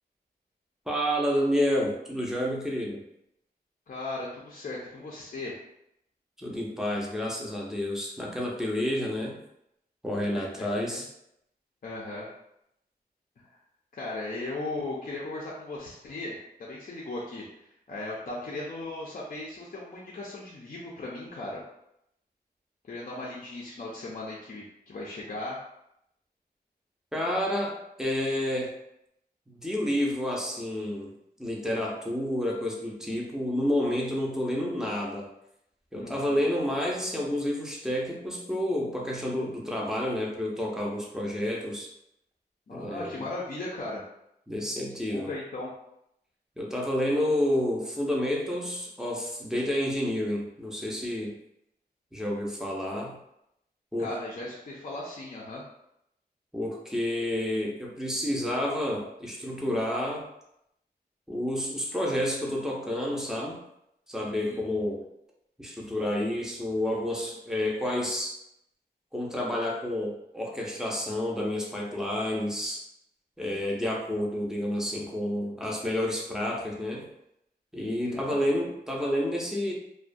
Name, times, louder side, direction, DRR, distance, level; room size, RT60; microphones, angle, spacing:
voice 1, 0.9-3.0 6.4-9.4 10.0-11.0 27.1-28.7 29.5-31.1 31.4-35.3 35.9-41.9 42.7-43.3 44.5-45.3 46.6-51.4 52.1-53.2 53.9-54.1 56.5-60.3 61.3-63.6 64.1-65.1 65.6-68.4 69.1-72.8 73.4-77.1 77.7-79.7, left 1 dB, 5° right, -2 dB, 0.5 m, -29 dB
voice 2, 3.9-5.6 10.3-11.0 11.8-12.3 13.5-13.6 13.9-17.4 17.9-21.6 22.8-25.6 35.9-36.4 42.7-44.0 45.1-45.7 54.0-55.6 64.2-64.6 78.0-78.4, left 2 dB, 50° left, -4 dB, 0.5 m, -37 dB
2.3 x 2.1 x 2.5 m, 0.79 s
wide cardioid pair, 85°, 17 cm